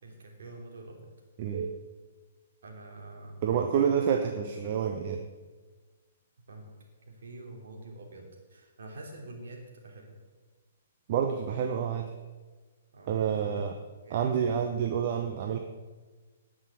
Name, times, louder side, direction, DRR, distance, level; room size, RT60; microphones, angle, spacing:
voice 1, 0.0-1.0 2.6-3.4 6.5-6.7 7.1-10.2 12.9-13.5 14.0-14.2, right 2 dB, 60° right, 1 dB, 3.5 m, -46 dB
voice 2, 1.4-1.7 3.4-5.2 11.1-12.1 13.1-13.7 14.1-15.6, right 7 dB, 40° right, 5 dB, 1.0 m, -28 dB
19.0 x 6.4 x 6.8 m, 1.3 s
figure-of-eight pair, 120°, 0 cm